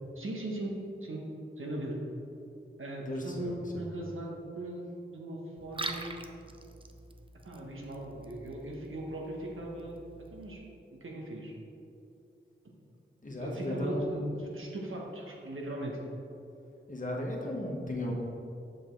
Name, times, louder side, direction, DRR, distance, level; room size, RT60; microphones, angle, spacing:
voice 1, 0.1-0.8 1.0-1.2 1.6-2.0 2.8-4.3 4.5-6.2 7.4-10.0 10.3-10.6 10.9-11.5 12.6-12.7 13.3-16.0, right 1 dB, 75° right, -2 dB, 1.2 m, -39 dB
voice 2, 3.0-3.5 13.2-14.3 16.9-18.1, left 1 dB, 40° left, -1 dB, 1.2 m, -35 dB
Liquid, 5.6-10.6, right 2 dB, 25° right, 0.5 m, -45 dB
6.4 x 5.2 x 3.9 m, 2.7 s
wide cardioid pair, 55°, 21 cm